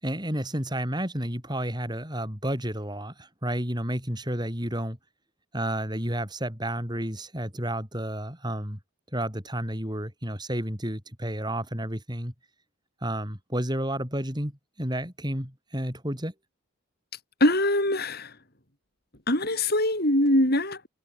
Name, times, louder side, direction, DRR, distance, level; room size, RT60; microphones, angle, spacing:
voice 1, 0.0-5.0 5.5-8.8 9.1-12.3 13.0-16.3, right 1 dB, 20° right, 7.9 m, -31 dB
voice 2, 17.4-18.3 19.3-20.9, left 1 dB, 45° left, 7.2 m, -23 dB
head